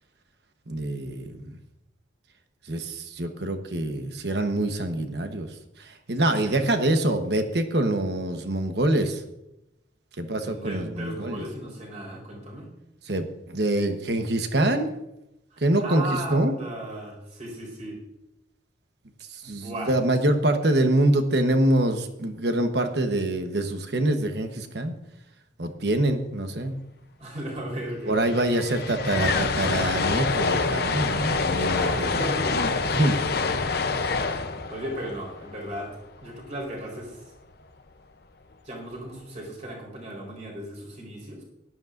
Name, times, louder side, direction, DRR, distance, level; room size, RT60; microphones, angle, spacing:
voice 1, 0.7-1.6 2.7-9.2 10.2-11.4 13.0-14.9 15.6-16.5 19.3-25.0 25.6-26.7 28.1-32.2 32.9-33.2, right 1 dB, 60° right, 7 dB, 1.1 m, -25 dB
voice 2, 10.4-12.7 15.5-18.0 19.5-20.0 27.2-28.2 31.8-32.6 34.1-34.4 34.7-37.3 38.6-41.4, right 1 dB, 35° right, -2 dB, 4.2 m, -36 dB
sound 1, 27.7-27.8 28.0-36.2, left 4 dB, 55° left, 0.7 m, -26 dB
17.0 x 12.0 x 2.6 m, 0.89 s
head